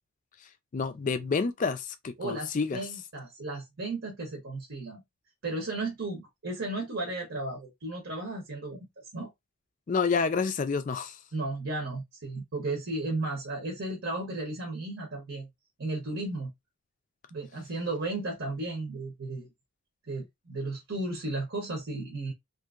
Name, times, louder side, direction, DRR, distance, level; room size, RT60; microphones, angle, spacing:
voice 1, 0.7-2.8 9.9-11.2, left 5 dB, 35° left, 0.3 m, -29 dB
voice 2, 2.2-5.0 5.4-8.8 9.1-9.3 11.3-15.5 15.8-16.5 17.3-19.5 20.1-22.3, right 2 dB, 55° right, 0.9 m, -34 dB
2.8 x 2.5 x 2.4 m
head